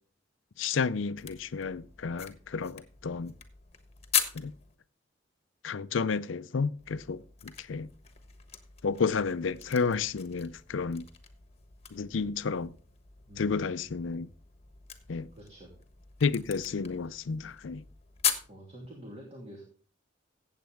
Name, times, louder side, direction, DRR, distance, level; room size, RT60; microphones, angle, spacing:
voice 1, 0.6-3.3 4.3-4.5 5.6-7.9 8.8-11.1 11.9-12.7 13.4-14.3 15.1-15.3 16.2-17.8, left 5 dB, 85° left, 0.5 m, -31 dB
sound 1, 1.1-4.7 6.8-18.5, left 8 dB, 35° left, 1.3 m, -39 dB
voice 2, 13.3-13.9 15.3-15.8 17.0-17.2 18.5-19.6, right 1 dB, 35° right, 2.7 m, -48 dB
15.5 x 8.1 x 3.5 m
head